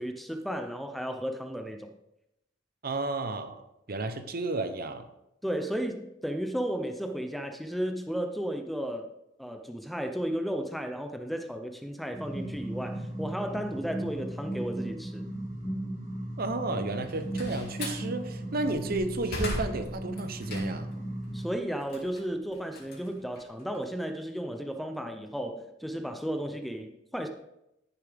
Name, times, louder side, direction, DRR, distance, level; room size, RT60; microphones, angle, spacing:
voice 1, 0.0-1.9 5.4-9.1 9.4-15.3 21.3-27.3, equal, ahead, 6 dB, 0.6 m, -34 dB
voice 2, 2.8-5.1 16.4-20.9, right 2 dB, 50° right, 9 dB, 0.8 m, -32 dB
sound 1, 12.1-21.5, right 1 dB, 20° left, 4.2 m, -36 dB
Slam, 16.9-18.0 18.6-21.0 21.4-23.8, left 1 dB, 55° left, 3.3 m, -38 dB
14.5 x 7.0 x 3.5 m, 0.86 s
head